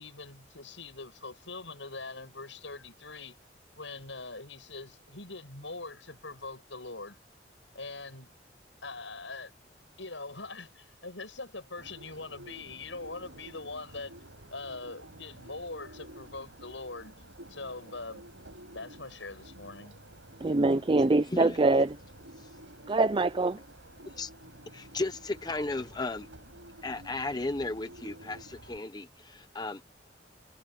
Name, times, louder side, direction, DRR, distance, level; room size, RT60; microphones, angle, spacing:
voice 1, 0.0-3.4 3.8-7.2 7.7-8.3 8.8-9.5 10.0-14.2 14.5-17.1 17.5-18.2 18.7-20.0, left 3 dB, 80° left, 7.6 m, -42 dB
Bird, 11.8-28.8, right 1 dB, 80° right, 8.0 m, -51 dB
voice 2, 20.4-22.0 22.9-23.6, right 2 dB, 25° right, 0.4 m, -24 dB
voice 3, 24.7-26.3 26.8-29.8, left 2 dB, 20° left, 0.7 m, -35 dB
head